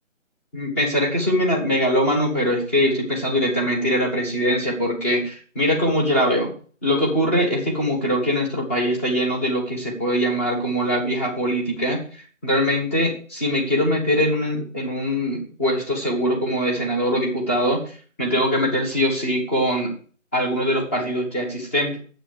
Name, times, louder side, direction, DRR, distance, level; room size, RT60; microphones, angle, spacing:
voice 1, 0.5-6.5 6.8-12.0 12.4-17.8 18.2-19.9 20.3-22.0, equal, 10° left, -2 dB, 1.2 m, -22 dB
9.4 x 7.6 x 6.4 m, 0.43 s
figure-of-eight pair, 160°, 40 cm